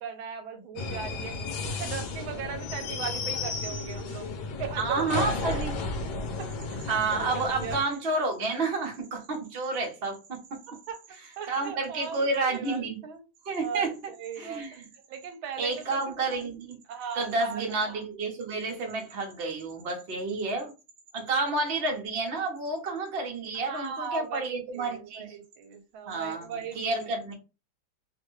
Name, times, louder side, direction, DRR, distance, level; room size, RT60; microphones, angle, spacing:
voice 1, 0.0-1.4 1.7-4.3 4.6-5.6 6.4-6.5 7.3-7.8 10.9-11.0 11.4-13.2 13.6-14.8 15.1-16.0 16.9-17.8 23.7-27.2, right 7 dB, 80° right, 1.4 m, -38 dB
sound 1, 0.8-7.8, left 3 dB, 70° left, 1.2 m, -33 dB
voice 2, 4.8-5.7 6.9-10.6 11.5-13.0 13.4-13.9 14.4-14.8 15.6-16.8 17.1-20.7 21.1-25.3 26.1-27.3, right 3 dB, 50° right, 0.7 m, -30 dB
3.3 x 2.2 x 3.0 m
omnidirectional pair, 2.3 m